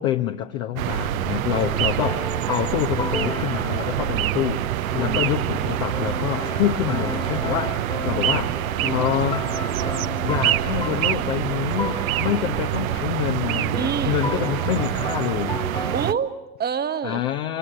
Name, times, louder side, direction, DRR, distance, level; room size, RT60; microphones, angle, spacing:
voice 1, 0.0-8.6 8.9-9.5 10.2-15.6 17.0-17.6, left 11 dB, 55° left, 4 dB, 1.2 m, -27 dB
sound 1, 0.8-16.1, right 13 dB, 60° right, 0.9 m, -26 dB
sound 2, 1.5-11.3 11.5-16.2, left 3 dB, 10° left, 1.7 m, -34 dB
voice 2, 13.8-14.3 15.9-17.2, right 7 dB, 20° right, 10 dB, 1.3 m, -27 dB
27.0 x 24.5 x 6.6 m, 0.98 s
figure-of-eight pair, 75°, 46 cm